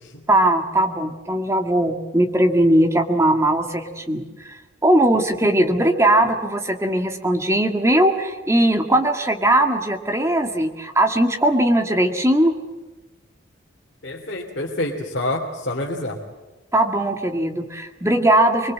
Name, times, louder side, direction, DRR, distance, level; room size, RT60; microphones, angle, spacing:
voice 1, 0.3-12.6 16.7-18.7, right 1 dB, 15° right, 4 dB, 2.0 m, -19 dB
voice 2, 14.0-16.2, left 1 dB, 55° left, -2 dB, 2.9 m, -27 dB
24.5 x 22.5 x 7.6 m, 1.1 s
head